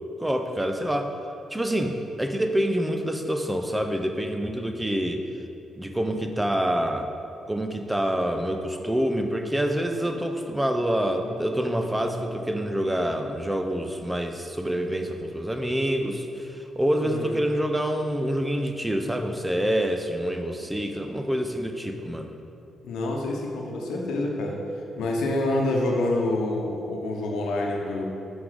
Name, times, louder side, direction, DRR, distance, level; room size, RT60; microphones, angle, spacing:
voice 1, 0.2-1.1 1.5-5.2 5.8-7.1 7.5-22.3, equal, 10° right, 5 dB, 0.7 m, -27 dB
sound 1, 8.3-10.8 11.2-13.7 14.6-14.8, left 3 dB, 40° left, 0.7 m, -48 dB
voice 2, 17.0-17.4 22.8-24.6 25.0-28.1, left 2 dB, 85° left, 0 dB, 1.0 m, -27 dB
5.8 x 5.2 x 4.9 m, 2.7 s
cardioid pair, 70°, 0 cm